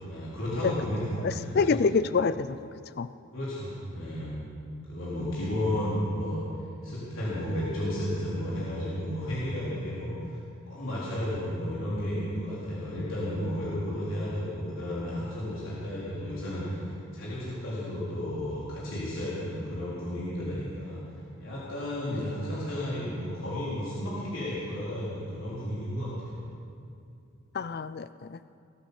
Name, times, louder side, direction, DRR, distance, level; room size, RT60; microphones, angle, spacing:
voice 1, 0.0-1.8 3.3-4.3 4.9-6.4 6.8-10.3 10.7-16.8 17.1-21.0 21.4-26.4, equal, 75° left, -9 dB, 4.1 m, -33 dB
voice 2, 1.2-2.6 3.0-3.1 27.5-28.4, left 5 dB, 50° left, 14 dB, 0.4 m, -26 dB
20.5 x 8.9 x 7.1 m, 2.5 s
head